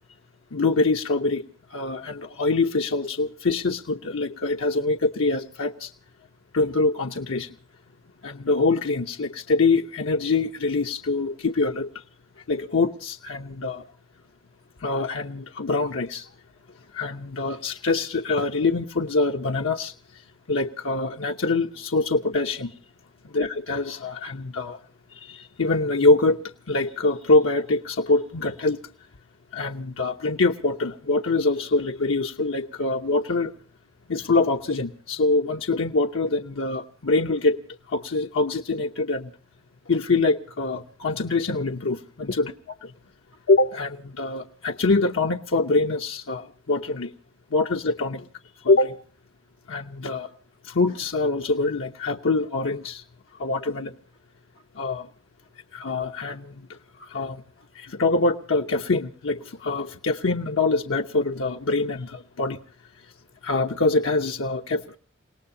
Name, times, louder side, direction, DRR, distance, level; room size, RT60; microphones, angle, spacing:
voice 1, 0.5-1.4 1.7-5.9 6.5-7.5 8.2-11.9 12.5-13.8 14.8-16.3 16.9-19.9 20.5-22.7 23.2-24.8 25.2-28.8 29.5-33.5 34.1-37.6 37.9-39.3 39.9-42.5 42.8-42.9 43.5-47.1 47.5-48.3 48.6-49.0 49.7-50.3 50.6-53.0 53.4-53.9 54.7-55.1 55.7-57.4 57.7-62.6 63.4-65.0, left 3 dB, 85° left, 3 dB, 0.9 m, -24 dB
29.0 x 18.0 x 2.7 m, 0.42 s
head